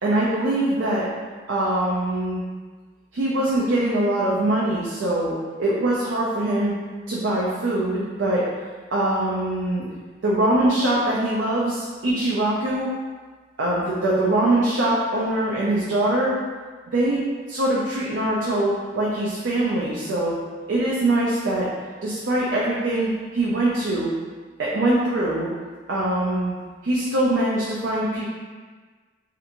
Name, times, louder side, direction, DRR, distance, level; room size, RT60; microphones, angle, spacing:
voice 1, 0.0-1.0 1.5-2.4 3.1-6.7 7.1-8.5 8.9-9.9 10.2-12.9 13.6-16.3 16.9-17.2 17.5-20.4 20.7-21.7 22.0-24.1 24.6-25.5 25.9-26.5 26.8-28.3, right 1 dB, 75° right, -6 dB, 0.5 m, -23 dB
3.3 x 2.5 x 2.9 m, 1.5 s
head